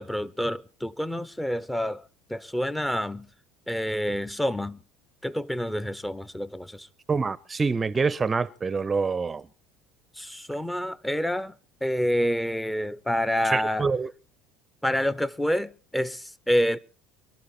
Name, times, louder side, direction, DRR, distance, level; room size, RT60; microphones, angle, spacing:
voice 1, 0.0-3.3 3.7-4.8 5.2-6.9 10.1-11.6 11.8-13.9 14.8-16.8, equal, 5° left, 0.8 m, -28 dB
voice 2, 7.1-9.4 13.5-14.1, right 4 dB, 25° right, 0.6 m, -26 dB
23.5 x 12.0 x 4.3 m
hypercardioid pair, 70°, 0 cm